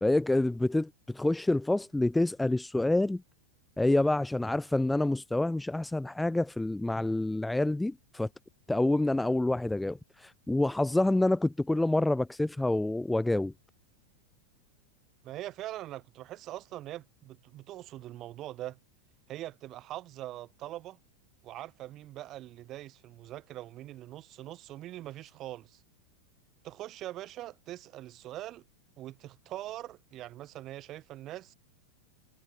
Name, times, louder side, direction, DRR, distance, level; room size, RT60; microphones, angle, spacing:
voice 1, 0.0-3.2 3.8-8.3 8.7-13.5, left 2 dB, 5° left, 0.4 m, -27 dB
voice 2, 15.2-18.8 19.3-21.0 21.4-25.8 26.6-28.6 29.0-31.5, right 14 dB, 35° right, 4.4 m, -42 dB
figure-of-eight pair, 90°, 0 cm